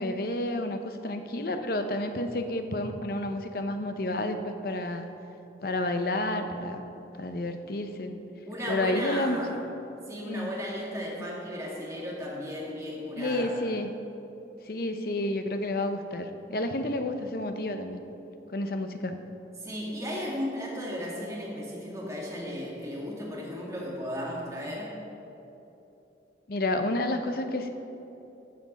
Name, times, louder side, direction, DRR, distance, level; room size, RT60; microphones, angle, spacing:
voice 1, 0.0-5.1 5.6-6.8 7.1-8.1 8.7-9.6 10.2-10.5 11.2-11.3 13.2-13.9 14.7-18.0 18.5-19.2 26.5-27.7, left 1 dB, 55° left, 7 dB, 0.7 m, -30 dB
voice 2, 8.5-9.6 10.1-13.5 19.6-24.9, equal, 15° right, -4 dB, 2.0 m, -35 dB
14.0 x 6.0 x 5.3 m, 3.0 s
head